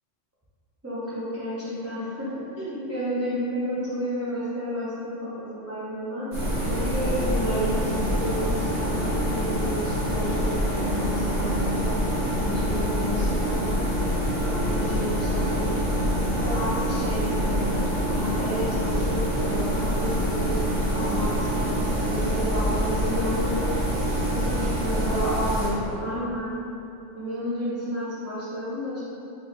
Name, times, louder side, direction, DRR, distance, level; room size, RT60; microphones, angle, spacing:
voice 1, 0.8-6.3 6.6-11.9 12.4-13.7 14.4-17.8 18.1-23.7 24.0-24.1 24.5-26.5 27.1-29.0, equal, 15° right, -13 dB, 0.6 m, -31 dB
sound 1, 6.3-25.7, equal, 50° right, 1.2 m, -26 dB
4.3 x 2.7 x 3.9 m, 2.7 s
omnidirectional pair, 1.3 m